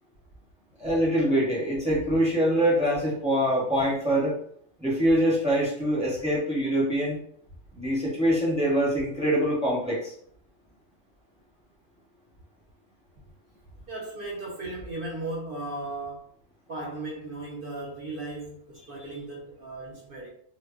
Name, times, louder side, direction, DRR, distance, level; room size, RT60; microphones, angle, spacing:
voice 1, 0.8-4.3 4.8-7.2 7.7-10.1, equal, 5° right, -5 dB, 0.6 m, -24 dB
voice 2, 13.9-16.3 16.7-20.3, right 2 dB, 55° right, -3 dB, 0.7 m, -36 dB
2.1 x 2.1 x 3.5 m, 0.63 s
omnidirectional pair, 1.3 m